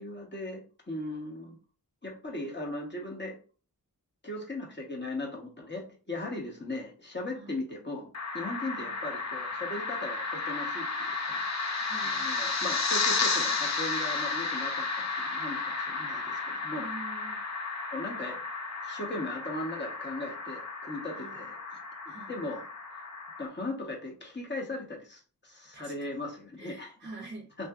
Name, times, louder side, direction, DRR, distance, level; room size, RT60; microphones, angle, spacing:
voice 1, 0.0-1.6 2.0-3.4 4.2-8.1 8.3-16.9 17.9-18.4 18.8-21.8 22.1-23.1 23.4-26.9 27.6-27.7, left 2 dB, 30° left, -1 dB, 1.0 m, -38 dB
sound 1, 8.1-23.5, left 4 dB, 50° left, 0.5 m, -33 dB
voice 2, 11.8-12.3 16.8-17.4 21.1-21.5 22.1-22.3 25.7-25.9 26.6-27.5, right 2 dB, 30° right, 2 dB, 0.7 m, -46 dB
2.7 x 2.6 x 2.3 m, 0.36 s
wide cardioid pair, 60°, 36 cm